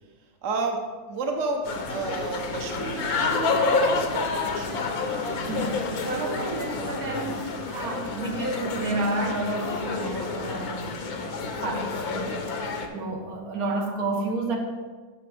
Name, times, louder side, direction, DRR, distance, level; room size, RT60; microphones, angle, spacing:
voice 1, 0.4-1.6 1.9-5.0, right 3 dB, 60° right, 3 dB, 1.2 m, -31 dB
sound 1, 1.7-12.9, left 4 dB, 90° left, 1.4 m, -29 dB
voice 2, 5.5-12.6 12.9-14.6, right 2 dB, 85° right, 2 dB, 1.5 m, -31 dB
10.0 x 6.0 x 3.4 m, 1.4 s
omnidirectional pair, 1.5 m